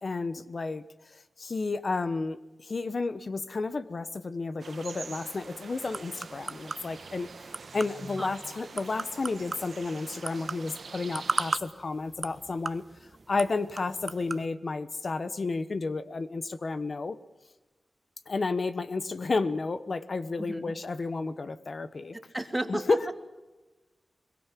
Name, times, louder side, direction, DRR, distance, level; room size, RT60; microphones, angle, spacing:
voice 1, 0.0-12.8 13.3-17.2 18.3-22.2 22.7-23.1, left 3 dB, 55° left, 13 dB, 1.1 m, -32 dB
sound 1, 4.6-11.6, right 4 dB, 70° right, 1.5 m, -45 dB
sound 2, 5.0-14.5, right 3 dB, 45° right, 0.9 m, -39 dB
voice 2, 20.4-20.7 22.1-23.0, right 1 dB, 15° right, 7 dB, 2.3 m, -33 dB
22.5 x 22.0 x 7.5 m, 1.2 s
wide cardioid pair, 70°, 0 cm